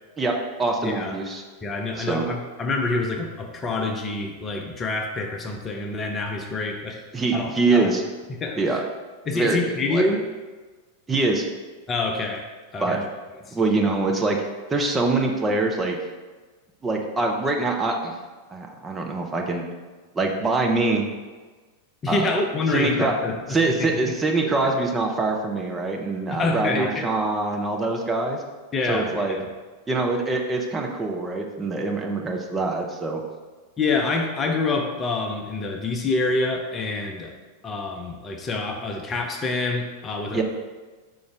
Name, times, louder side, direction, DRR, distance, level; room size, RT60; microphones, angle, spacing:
voice 1, 0.2-1.4 2.0-2.3 7.1-8.0 8.6-8.8 9.3-10.1 11.1-11.5 12.8-13.0 13.5-14.4 14.7-16.0 16.8-18.1 18.5-19.7 20.1-21.1 22.1-22.3 22.7-23.1 23.5-28.4 28.9-29.4 29.9-33.2 40.3-40.4, right 3 dB, 15° right, 1 dB, 0.6 m, -24 dB
voice 2, 0.8-1.1 1.6-7.0 7.3-7.9 8.3-8.8 9.3-10.3 11.9-12.5 12.7-13.1 13.5-13.6 22.0-24.2 24.6-24.7 26.3-27.1 28.7-29.5 33.8-37.3 37.6-40.4, left 3 dB, 25° left, 3 dB, 0.6 m, -27 dB
5.2 x 3.9 x 4.6 m, 1.3 s
figure-of-eight pair, 90°, 0 cm